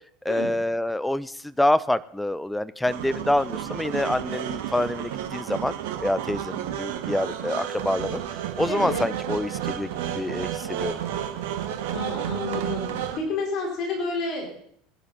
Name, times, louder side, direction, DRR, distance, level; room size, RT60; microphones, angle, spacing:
voice 1, 0.2-5.7 6.0-8.2 8.6-11.0, left 1 dB, 5° left, 15 dB, 0.6 m, -26 dB
sound 1, 2.8-13.2, right 10 dB, 60° right, 1.3 m, -31 dB
voice 2, 8.7-9.0 11.9-12.8 13.2-14.5, left 3 dB, 45° left, 0 dB, 4.4 m, -29 dB
20.5 x 11.0 x 4.2 m, 0.67 s
figure-of-eight pair, 75°, 0 cm